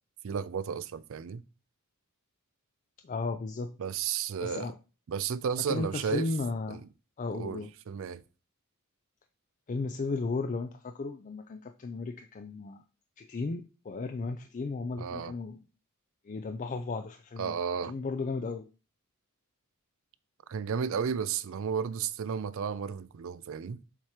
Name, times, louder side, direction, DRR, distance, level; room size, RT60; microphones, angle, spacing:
voice 1, 0.2-1.4 3.8-4.7 5.1-6.3 6.7-6.8 7.3-8.2 15.0-15.3 17.4-17.9 20.5-23.8, right 7 dB, 65° right, 0.4 m, -33 dB
voice 2, 3.0-3.7 4.4-4.7 5.7-6.8 7.2-7.7 9.7-12.8 13.2-15.6 16.2-17.6 17.8-18.7, left 3 dB, 35° left, 0.4 m, -35 dB
7.3 x 2.9 x 4.9 m
head